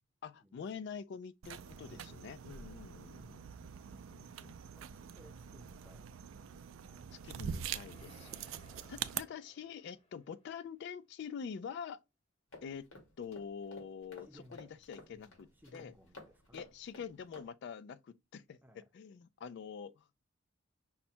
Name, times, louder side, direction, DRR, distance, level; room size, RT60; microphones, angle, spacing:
voice 1, 0.2-4.5 7.1-8.5 8.9-12.0 12.6-12.9 13.2-15.9 16.5-20.1, left 6 dB, 55° left, 0.3 m, -46 dB
sound 1, 1.4-9.2, right 8 dB, 75° right, 0.4 m, -44 dB
voice 2, 4.8-6.1 6.9-7.4 8.2-8.9 14.3-14.6 15.1-15.3 15.6-16.7 18.6-18.8, equal, 10° right, 0.5 m, -61 dB
sound 2, 6.7-11.0, left 1 dB, 30° left, 0.9 m, -64 dB
sound 3, 12.5-17.5, left 2 dB, 85° left, 2.0 m, -55 dB
5.6 x 2.1 x 4.2 m
head